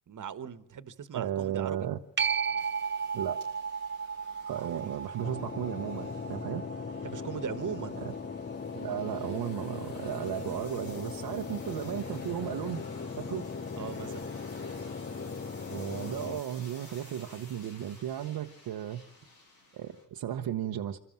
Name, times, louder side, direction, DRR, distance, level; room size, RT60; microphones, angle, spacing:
voice 1, 0.1-1.9 4.5-4.9 7.0-8.0 13.8-14.3, right 7 dB, 55° right, 14 dB, 1.5 m, -39 dB
voice 2, 1.1-2.0 3.1-3.4 4.4-6.6 8.0-8.1 8.7-12.8 13.2-13.4 15.7-19.1 19.7-21.0, right 10 dB, 75° right, 3 dB, 1.1 m, -35 dB
sound 1, 1.4-20.0, left 2 dB, 85° left, 7.4 m, -54 dB
sound 2, 2.2-9.3 14.9-15.0, right 6 dB, 30° right, 1.5 m, -36 dB
sound 3, 5.2-16.4, left 5 dB, 30° left, 0.9 m, -39 dB
26.0 x 13.5 x 7.5 m, 0.82 s
supercardioid pair, 50°, 36 cm